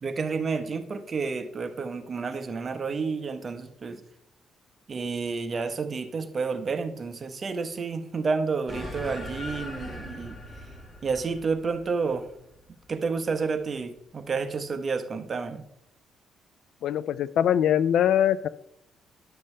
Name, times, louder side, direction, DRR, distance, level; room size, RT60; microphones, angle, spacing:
voice 1, 0.0-4.0 4.9-10.4 11.0-12.3 12.9-15.6, right 4 dB, 40° right, 8 dB, 1.0 m, -30 dB
sound 1, 8.7-13.5, left 1 dB, 25° left, 2.1 m, -40 dB
voice 2, 16.8-18.5, left 10 dB, 75° left, 18 dB, 0.3 m, -22 dB
10.5 x 6.8 x 3.3 m, 0.78 s
cardioid pair, 90°, 0 cm